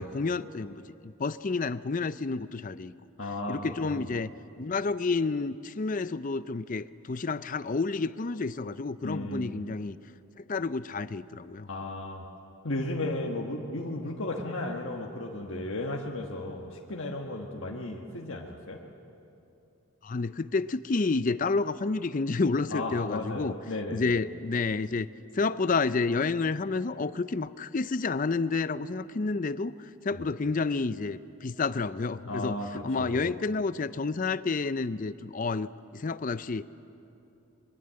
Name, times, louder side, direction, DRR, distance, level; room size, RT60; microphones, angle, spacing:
voice 1, 0.0-2.9 3.5-4.3 4.6-10.0 10.5-11.7 20.0-23.5 23.9-25.1 25.3-29.8 30.0-32.6 32.8-36.6, left 4 dB, 35° left, 15 dB, 0.5 m, -30 dB
voice 2, 3.2-4.1 9.0-9.6 11.7-12.2 12.6-18.8 22.7-24.1 30.1-30.2 32.3-33.3, left 2 dB, 60° left, -1 dB, 1.4 m, -35 dB
23.5 x 22.5 x 7.7 m, 2.8 s
head